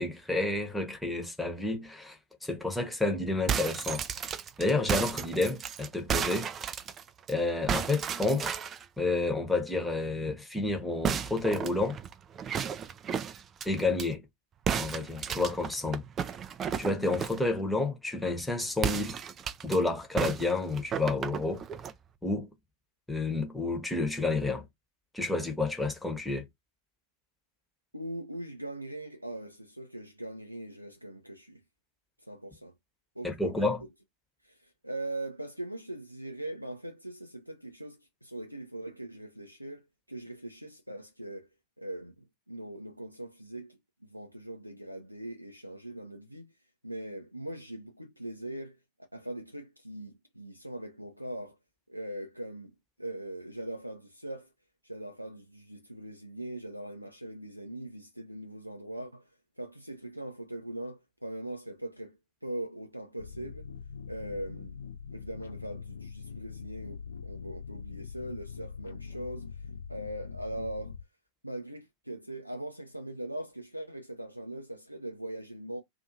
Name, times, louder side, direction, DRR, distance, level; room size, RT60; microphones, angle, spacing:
voice 1, 0.0-4.0 4.6-6.5 7.3-8.6 9.0-12.0 13.6-14.2 14.7-16.0 16.8-19.2 19.6-21.6 22.2-22.5 23.1-24.6 25.1-26.4 33.2-33.8, left 2 dB, 5° left, 0.9 m, -30 dB
sound 1, 3.3-7.3 7.7-8.9 11.0-14.1 14.7-17.5 18.8-19.8 20.2-22.0, right 7 dB, 25° right, 0.4 m, -33 dB
voice 2, 27.9-31.6 32.2-32.7 33.2-33.8 34.4-41.5 41.8-46.5 46.8-48.8 49.1-51.6 51.9-54.5 54.8-59.3 59.6-63.7 64.1-64.8 65.1-69.6 69.9-71.0 71.4-75.8, right 1 dB, 90° right, 0.5 m, -41 dB
sound 2, 63.2-71.0, left 6 dB, 70° left, 0.5 m, -43 dB
2.6 x 2.5 x 2.6 m
figure-of-eight pair, 90°, 0 cm